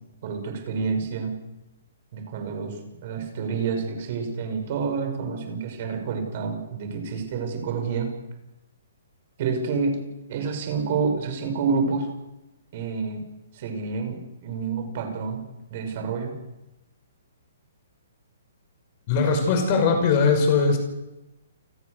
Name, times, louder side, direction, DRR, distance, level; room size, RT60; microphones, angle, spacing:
voice 1, 0.2-1.4 2.1-2.8 3.0-8.1 9.4-10.0 10.3-12.1 12.7-13.2 13.5-15.4 15.7-16.3, right 5 dB, 35° right, 5 dB, 6.1 m, -28 dB
voice 2, 19.1-20.8, left 5 dB, 30° left, 5 dB, 5.6 m, -20 dB
29.5 x 18.5 x 6.7 m, 1.0 s
hypercardioid pair, 170°, 0 cm